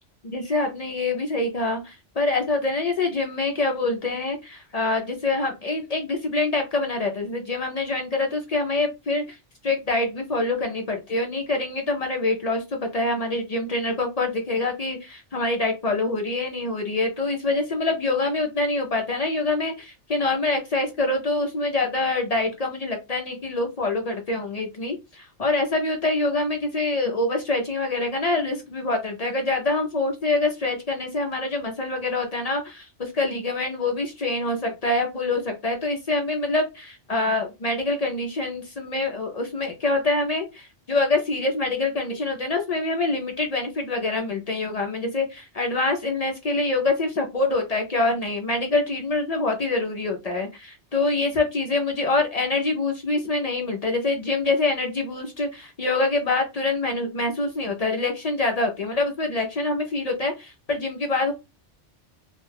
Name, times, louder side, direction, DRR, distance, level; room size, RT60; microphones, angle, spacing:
voice 1, 0.2-9.4 9.6-61.3, left 2 dB, 50° left, 3 dB, 0.5 m, -25 dB
2.4 x 2.2 x 3.2 m, 0.24 s
omnidirectional pair, 1.2 m